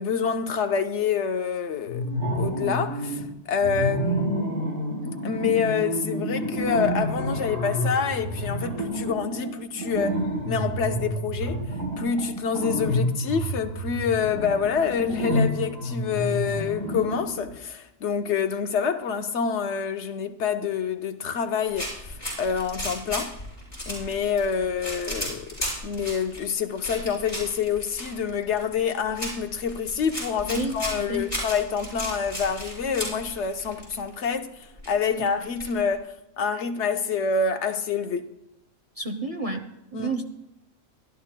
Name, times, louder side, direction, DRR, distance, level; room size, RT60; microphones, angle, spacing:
voice 1, 0.0-2.1 2.3-4.5 5.0-10.2 10.5-11.6 12.0-23.4 23.9-25.5 25.8-34.5 34.9-38.3 39.9-40.2, left 6 dB, 65° left, 1.1 m, -27 dB
sound 1, 1.9-3.2 3.6-17.5, equal, 85° right, 5.0 m, -29 dB
sound 2, 21.7-34.1 34.3-34.4 34.6-36.0, equal, 30° left, 6.1 m, -35 dB
voice 2, 39.0-40.2, right 2 dB, 35° right, 0.8 m, -30 dB
25.0 x 11.5 x 2.2 m
omnidirectional pair, 1.3 m